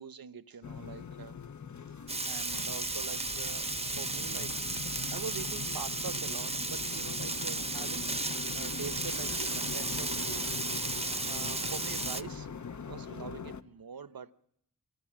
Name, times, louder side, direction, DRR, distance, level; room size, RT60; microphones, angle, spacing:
voice 1, 0.0-1.4 2.3-4.6 4.8-10.5 11.1-12.5 12.9-14.3, right 6 dB, 70° right, 0.9 m, -44 dB
sound 1, 0.6-13.6, left 6 dB, 50° left, 0.8 m, -42 dB
Frying (food), 2.1-12.2, right 2 dB, 15° right, 0.8 m, -34 dB
24.0 x 18.0 x 7.4 m
wide cardioid pair, 95°, 37 cm